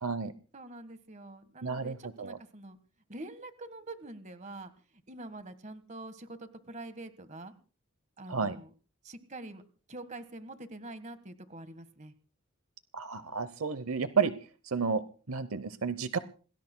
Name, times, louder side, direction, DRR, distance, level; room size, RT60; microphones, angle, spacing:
voice 1, 0.0-0.3 1.6-2.4 8.3-8.6 12.9-14.3 14.7-16.2, right 5 dB, 75° right, 13 dB, 0.8 m, -31 dB
voice 2, 0.5-2.8 3.1-4.7 5.1-7.5 8.2-8.7 9.0-9.6 9.9-12.1, right 2 dB, 35° right, 11 dB, 1.5 m, -45 dB
27.0 x 19.0 x 2.2 m, 0.38 s
head